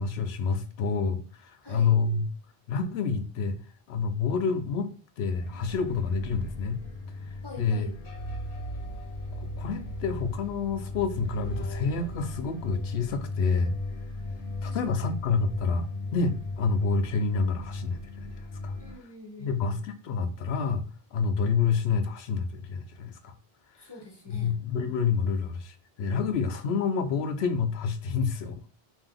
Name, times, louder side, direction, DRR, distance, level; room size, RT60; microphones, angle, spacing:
voice 1, 0.0-2.3 2.7-3.6 3.9-4.9 5.2-6.8 7.2-7.3 7.6-7.9 9.4-13.7 14.6-18.3 18.6-18.7 19.4-20.8 21.1-23.3 24.3-28.6, left 5 dB, 85° left, 8 dB, 0.8 m, -28 dB
voice 2, 1.6-2.0 7.4-7.9 14.2-15.0 18.8-19.8 23.7-24.5, left 2 dB, 25° left, 1 dB, 0.8 m, -46 dB
sound 1, 5.3-18.9, left 2 dB, 65° left, 1.0 m, -37 dB
3.5 x 2.7 x 3.6 m, 0.38 s
omnidirectional pair, 1.0 m